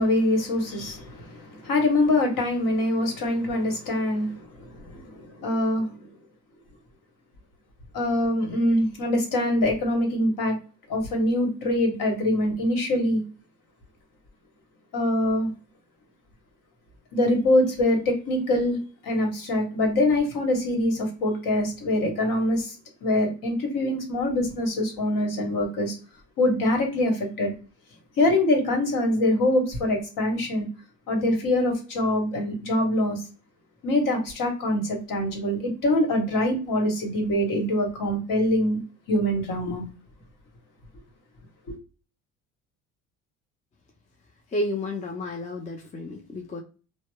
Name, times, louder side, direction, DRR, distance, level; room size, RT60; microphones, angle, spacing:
voice 1, 0.0-5.9 7.9-10.6 10.9-13.2 14.9-15.5 17.1-22.7 23.0-25.9 26.4-27.5 28.2-30.7 31.1-33.2 33.8-38.8 39.1-39.8 41.7-41.8, left 1 dB, 55° left, 2 dB, 1.2 m, -24 dB
voice 2, 44.5-46.6, left 1 dB, 20° left, 2 dB, 0.5 m, -31 dB
2.7 x 2.1 x 2.3 m, 0.35 s
hypercardioid pair, 65°, 40 cm